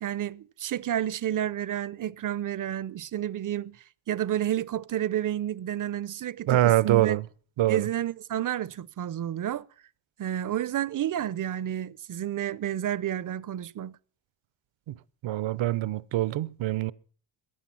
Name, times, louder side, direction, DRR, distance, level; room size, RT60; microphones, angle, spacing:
voice 1, 0.0-7.2 7.7-9.7 10.2-13.9, right 11 dB, 40° right, 0.6 m, -30 dB
voice 2, 6.5-7.3 7.6-7.9 14.9-15.0 15.2-16.9, right 14 dB, 70° right, 0.8 m, -24 dB
15.5 x 10.5 x 5.7 m
cardioid pair, 100°, 48 cm